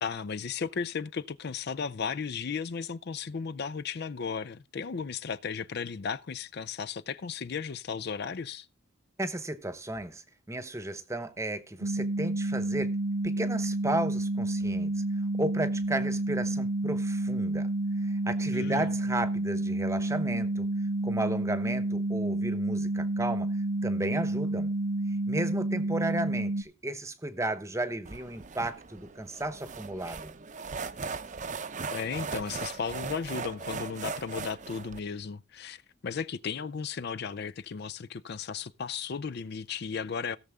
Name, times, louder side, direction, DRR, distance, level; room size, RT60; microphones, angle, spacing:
voice 1, 0.0-8.7 18.5-18.9 31.9-40.4, left 6 dB, 55° left, 0.5 m, -35 dB
voice 2, 9.2-12.9 13.2-14.9 15.4-17.7 18.0-20.7 21.0-23.6 23.8-24.7 25.3-30.3, right 1 dB, 15° right, 0.9 m, -34 dB
sound 1, 11.8-26.6, right 2 dB, 75° right, 0.6 m, -30 dB
sound 2, 28.0-35.0, right 4 dB, 40° right, 0.7 m, -38 dB
17.0 x 6.7 x 3.5 m
head